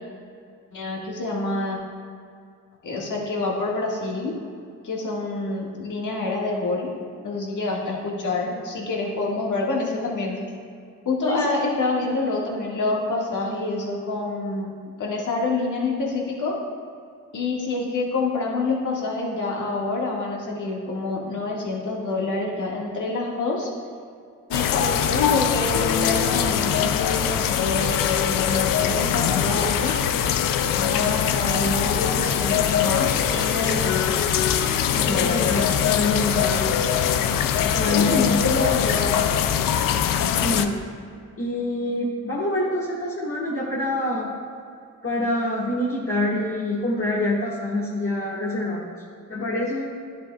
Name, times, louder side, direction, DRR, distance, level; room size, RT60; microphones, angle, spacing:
voice 1, 0.7-1.8 2.8-4.3 4.8-6.9 7.2-10.4 11.1-16.6 17.3-23.7 24.5-29.9 30.8-34.2 34.9-36.0 37.9-39.2, left 3 dB, 65° left, -2 dB, 1.8 m, -27 dB
sound 1, 24.5-40.7, left 9 dB, 90° left, 0.5 m, -22 dB
voice 2, 35.0-36.7 37.7-38.4 40.4-40.8 41.4-44.3 45.0-48.9 49.3-49.8, left 1 dB, 45° left, -8 dB, 1.6 m, -26 dB
11.0 x 7.4 x 2.3 m, 2.3 s
cardioid pair, 55°, 32 cm